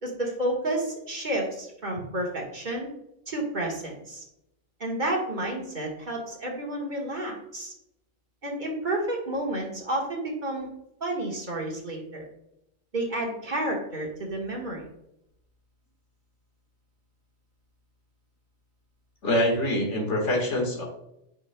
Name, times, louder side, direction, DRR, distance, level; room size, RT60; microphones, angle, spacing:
voice 1, 0.0-2.9 3.3-4.2 4.8-7.7 8.4-10.7 11.0-12.3 12.9-14.8, right 1 dB, 40° right, -1 dB, 1.6 m, -30 dB
voice 2, 19.2-20.8, left 1 dB, 75° left, -1 dB, 2.0 m, -25 dB
8.1 x 5.7 x 2.2 m, 0.81 s
omnidirectional pair, 1.2 m